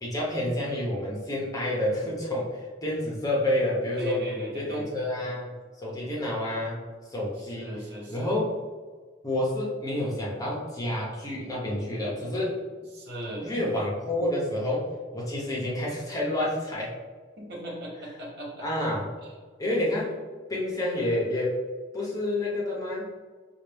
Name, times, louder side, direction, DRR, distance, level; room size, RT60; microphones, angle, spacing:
voice 1, 0.0-4.3 4.5-5.5 5.8-6.8 7.1-7.8 8.1-8.5 9.2-12.6 13.4-16.9 18.6-19.1 19.6-20.2 20.5-21.6 21.9-23.1, left 1 dB, 20° left, -5 dB, 1.0 m, -29 dB
voice 2, 4.0-4.9 7.6-8.3 12.9-13.6 17.4-18.6, right 1 dB, 60° right, -4 dB, 1.2 m, -38 dB
4.9 x 2.5 x 3.4 m, 1.5 s
head